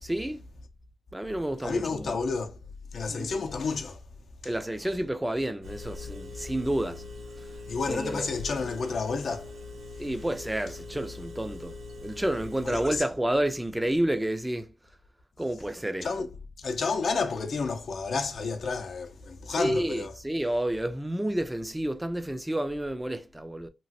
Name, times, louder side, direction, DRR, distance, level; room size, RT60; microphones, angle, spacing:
voice 1, 0.0-0.4 1.1-2.2 3.1-3.3 4.4-7.0 7.4-7.5 7.9-8.3 10.0-11.8 12.0-14.7 15.4-16.3 19.6-23.7, right 1 dB, 15° right, 0.5 m, -30 dB
voice 2, 1.6-2.6 2.9-4.0 7.7-9.6 12.6-12.8 16.0-16.3 16.6-20.1, left 4 dB, 70° left, 0.5 m, -30 dB
Engine, 5.6-13.0, left 3 dB, 90° right, 0.9 m, -42 dB
2.9 x 2.4 x 2.8 m
cardioid pair, 45°, 0 cm